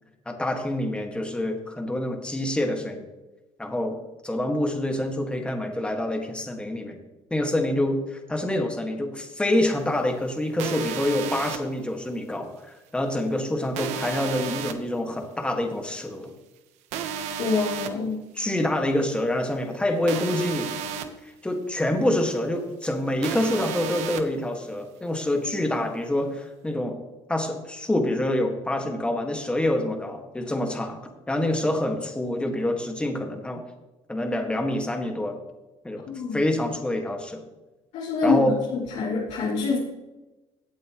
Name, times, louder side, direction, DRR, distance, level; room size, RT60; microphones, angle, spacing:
voice 1, 0.2-3.0 3.6-3.9 4.2-7.0 7.3-16.3 18.3-20.7 21.2-27.0 27.3-31.0 31.3-33.6 34.1-35.4 35.8-36.0 36.3-37.4 38.2-38.6, left 1 dB, 10° left, 3 dB, 1.8 m, -26 dB
sound 1, 10.6-11.6 13.8-14.7 16.9-17.9 20.1-21.1 23.2-24.2, right 8 dB, 90° right, 1.1 m, -32 dB
voice 2, 17.4-18.2 36.1-36.4 37.9-39.8, left 3 dB, 75° left, -6 dB, 3.0 m, -25 dB
17.0 x 8.1 x 3.1 m, 1.1 s
cardioid pair, 120°, 11 cm